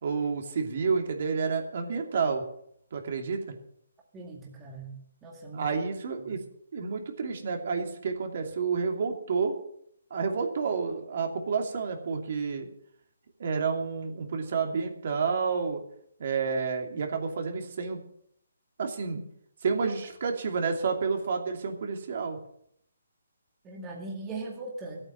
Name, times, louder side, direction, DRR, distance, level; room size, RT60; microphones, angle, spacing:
voice 1, 0.0-2.4 2.9-3.5 5.5-6.4 6.7-9.5 10.1-12.7 13.4-15.8 16.2-18.0 18.8-19.2 19.6-22.4, right 5 dB, 50° right, 4 dB, 2.7 m, -30 dB
voice 2, 4.1-5.7 6.2-6.4 19.8-19.9 23.6-25.0, right 3 dB, 15° right, -1 dB, 2.0 m, -40 dB
15.0 x 8.7 x 7.5 m, 0.69 s
hypercardioid pair, 165°, 0 cm